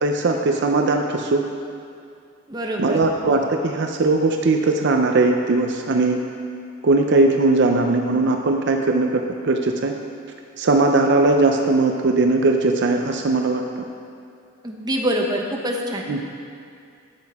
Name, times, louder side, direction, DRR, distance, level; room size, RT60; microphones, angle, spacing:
voice 1, 0.0-1.4 2.8-6.2 6.8-9.9 10.6-13.8 16.1-16.2, right 3 dB, 60° right, 3 dB, 0.6 m, -19 dB
voice 2, 2.5-3.0 14.6-16.1, equal, 20° right, 0 dB, 0.9 m, -25 dB
13.0 x 8.1 x 3.6 m, 2.4 s
head